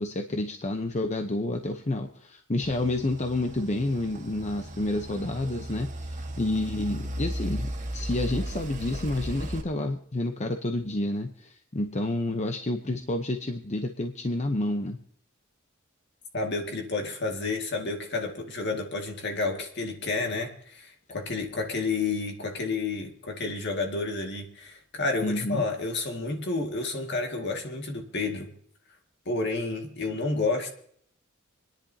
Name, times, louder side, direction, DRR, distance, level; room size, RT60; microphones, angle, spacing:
voice 1, 0.0-15.0 25.2-25.6, left 2 dB, 35° left, 5 dB, 0.8 m, -29 dB
sound 1, 2.6-9.6, right 1 dB, 35° right, 1.6 m, -36 dB
voice 2, 16.3-28.5 29.3-30.7, left 3 dB, 55° left, 3 dB, 2.1 m, -30 dB
27.5 x 10.5 x 2.8 m, 0.63 s
head